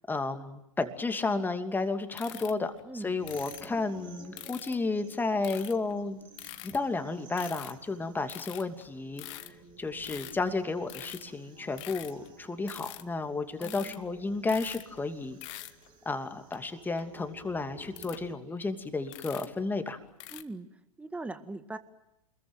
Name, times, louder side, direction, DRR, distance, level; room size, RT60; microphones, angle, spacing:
voice 1, 0.1-2.7 3.0-6.2 6.6-15.7 16.0-20.0, left 3 dB, 10° left, 7 dB, 2.7 m, -32 dB
sound 1, 2.2-3.7 4.4-4.8 5.4-5.9 6.4-7.0 7.4-7.9 8.3-11.3 11.6-12.3 12.7-13.1 13.4-14.1 14.3-15.0 15.2-15.9 16.5-16.6 16.9-18.2 18.6-18.7 19.0-19.6 20.2-20.4, left 16 dB, 50° left, 1.8 m, -45 dB
sound 2, 3.2-18.4, right 4 dB, 25° right, 4.6 m, -54 dB
voice 2, 13.6-14.2 20.3-20.7 21.0-21.8, right 2 dB, 5° right, 11 dB, 1.8 m, -40 dB
28.5 x 22.0 x 9.2 m, 0.86 s
hypercardioid pair, 105°, 19 cm